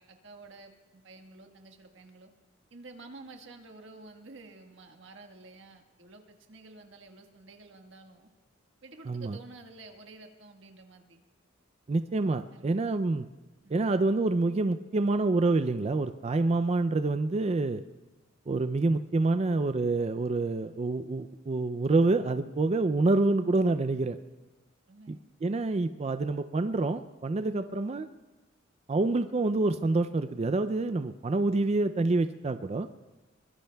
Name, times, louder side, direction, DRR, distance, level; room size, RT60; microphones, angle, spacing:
voice 1, 0.0-2.3 2.7-8.3 8.8-11.2 12.5-12.8 13.6-13.9 24.9-25.2 27.5-27.7, right 3 dB, 65° right, 4 dB, 1.5 m, -50 dB
voice 2, 9.1-9.4 11.9-13.3 13.7-17.8 18.5-24.2 25.1-28.1 28.9-32.9, right 2 dB, 30° right, 10 dB, 0.4 m, -27 dB
24.0 x 21.5 x 2.3 m, 1.1 s
head